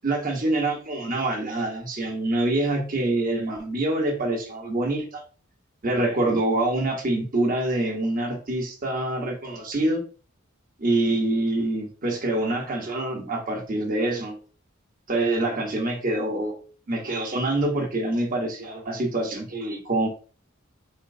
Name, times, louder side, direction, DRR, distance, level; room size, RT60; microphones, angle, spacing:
voice 1, 0.0-5.2 5.8-10.0 10.8-14.4 15.1-16.5 16.9-20.1, right 2 dB, 45° right, 1 dB, 1.1 m, -25 dB
4.3 x 3.2 x 2.6 m, 0.39 s
head